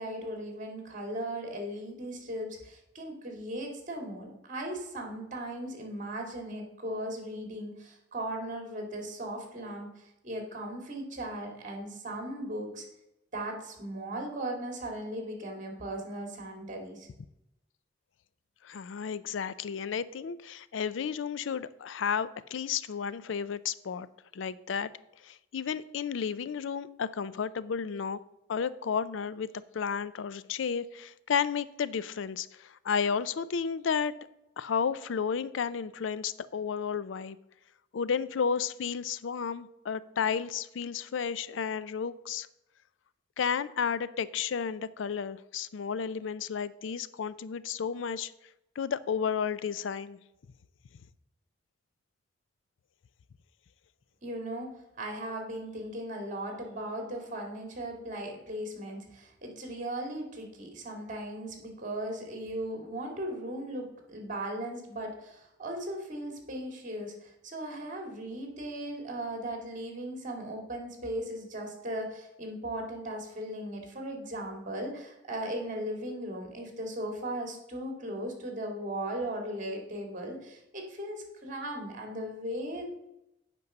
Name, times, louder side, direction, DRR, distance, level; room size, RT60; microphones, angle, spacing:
voice 1, 0.0-12.9 13.3-17.1 54.2-54.7 55.0-82.9, right 1 dB, 45° right, 2 dB, 2.3 m, -37 dB
voice 2, 18.6-24.1 24.3-24.9 25.2-28.2 28.5-29.5 29.7-34.1 34.6-37.4 37.9-42.5 43.4-48.3 48.8-50.2, left 6 dB, 85° left, 17 dB, 0.4 m, -32 dB
8.3 x 5.4 x 6.6 m, 0.86 s
head